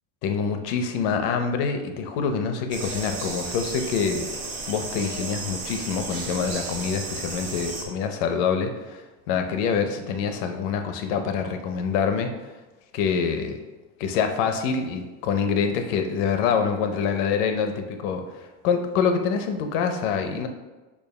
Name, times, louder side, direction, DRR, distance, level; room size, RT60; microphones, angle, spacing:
voice 1, 0.2-4.3 4.7-9.0 9.3-12.3 12.9-13.6 14.0-20.5, left 6 dB, 75° left, 6 dB, 0.7 m, -26 dB
sound 1, 2.7-7.8, right 3 dB, 35° right, 1.2 m, -34 dB
7.1 x 2.5 x 5.3 m, 1.2 s
cardioid pair, 165°, 34 cm